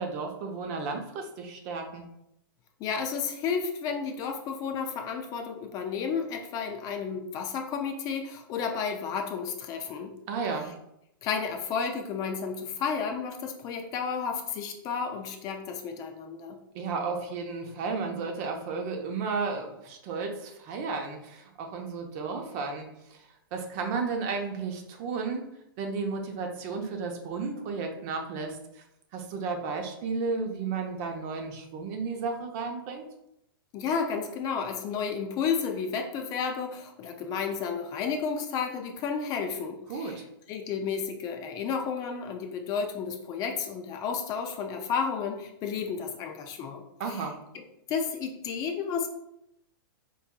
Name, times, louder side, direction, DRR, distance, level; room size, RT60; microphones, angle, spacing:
voice 1, 0.0-2.0 10.3-10.7 16.7-25.4 25.8-28.8 29.1-33.0 39.9-40.2 47.0-47.3, right 4 dB, 45° right, 3 dB, 0.7 m, -33 dB
voice 2, 2.8-10.1 11.2-16.6 33.7-40.2 40.5-46.8 47.1-47.3 47.9-49.1, left 6 dB, 30° left, 4 dB, 0.4 m, -32 dB
4.6 x 2.6 x 2.2 m, 0.81 s
hypercardioid pair, 120°, 12 cm